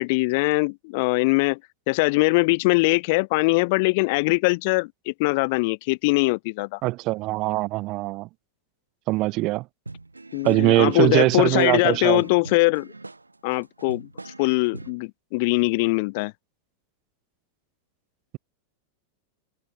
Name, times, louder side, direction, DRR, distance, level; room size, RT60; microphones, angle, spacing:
voice 1, 0.0-1.6 1.9-6.8 10.3-12.9 13.4-16.3, left 27 dB, 50° left, 0.7 m, -22 dB
voice 2, 6.8-8.3 9.1-9.6 10.4-12.2, right 20 dB, 40° right, 0.4 m, -22 dB
sound 1, 9.9-15.0, right 3 dB, 80° right, 5.6 m, -41 dB
figure-of-eight pair, 90°, 0 cm